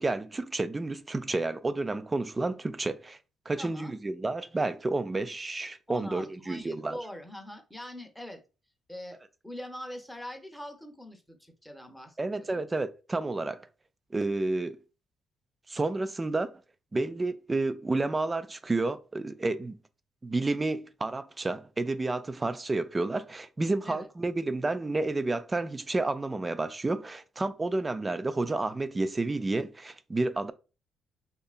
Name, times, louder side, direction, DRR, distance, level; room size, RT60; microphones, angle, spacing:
voice 1, 0.0-3.2 3.5-7.0 12.2-13.6 14.1-14.8 15.7-16.5 16.9-19.8 20.2-30.5, right 2 dB, 25° right, 0.3 m, -30 dB
voice 2, 3.6-3.9 5.9-8.4 8.9-9.2 9.4-12.6 23.8-24.1, left 1 dB, 5° left, 0.7 m, -43 dB
2.7 x 2.3 x 2.4 m
supercardioid pair, 70°, 0 cm